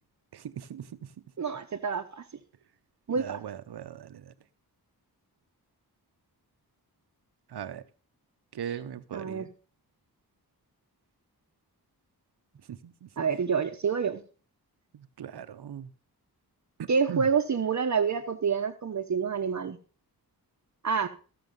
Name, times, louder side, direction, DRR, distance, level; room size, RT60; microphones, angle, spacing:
voice 1, 0.3-0.9 3.2-4.2 7.5-7.8 8.5-9.5 12.7-12.8 15.2-15.9 16.8-17.2, right 9 dB, 85° right, 0.9 m, -38 dB
voice 2, 1.4-2.2 3.1-3.4 9.1-9.5 13.2-14.2 16.9-19.8 20.8-21.1, right 6 dB, 45° right, 0.9 m, -27 dB
15.0 x 6.9 x 5.3 m
wide cardioid pair, 105°, 38 cm